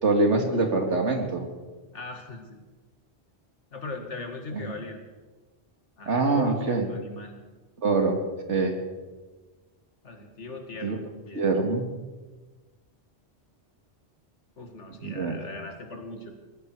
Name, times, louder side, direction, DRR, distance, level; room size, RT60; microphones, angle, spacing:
voice 1, 0.0-1.5 4.5-4.7 6.1-6.9 7.8-8.2 8.5-8.8 10.8-11.0 11.3-11.9 15.0-15.4, right 3 dB, 80° right, 4 dB, 2.4 m, -24 dB
voice 2, 1.9-2.6 3.7-5.1 6.0-7.4 10.0-11.6 14.6-16.3, left 3 dB, 80° left, 4 dB, 2.4 m, -39 dB
19.0 x 15.5 x 4.8 m, 1.3 s
omnidirectional pair, 1.2 m